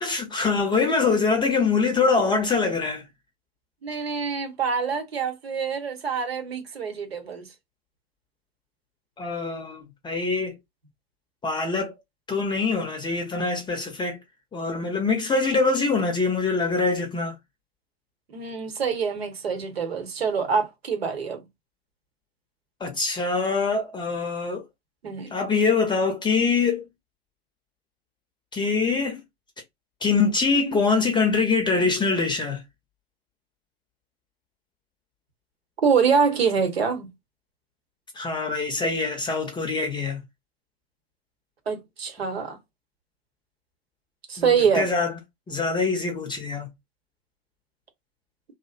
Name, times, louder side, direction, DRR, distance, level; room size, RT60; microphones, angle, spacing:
voice 1, 0.0-3.0 9.2-10.5 11.4-11.9 12.3-14.2 14.5-17.3 22.8-24.6 25.3-26.9 28.5-29.2 30.0-32.6 38.1-40.2 44.4-45.1 45.5-46.7, left 4 dB, 15° left, 0.6 m, -24 dB
voice 2, 3.8-7.5 18.3-21.4 25.0-25.3 35.8-37.1 41.7-42.6 44.3-44.9, right 6 dB, 80° right, 1.0 m, -25 dB
2.5 x 2.1 x 2.4 m
figure-of-eight pair, 95°, 31 cm